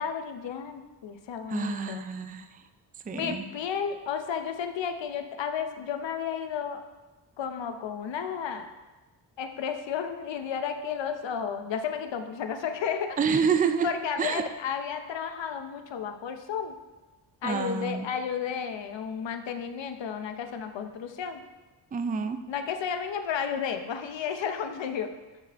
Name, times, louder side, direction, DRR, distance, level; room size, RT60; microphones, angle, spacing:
voice 1, 0.0-2.1 3.1-6.8 7.4-8.8 9.4-13.2 13.8-16.7 17.4-21.4 22.5-25.1, left 7 dB, 85° left, 7 dB, 0.8 m, -32 dB
voice 2, 1.5-2.6 3.1-3.5 13.2-13.9 14.2-14.5 17.4-18.1 21.9-22.4, right 6 dB, 20° right, 8 dB, 0.3 m, -28 dB
12.0 x 4.9 x 3.4 m, 1.2 s
wide cardioid pair, 150°, 43 cm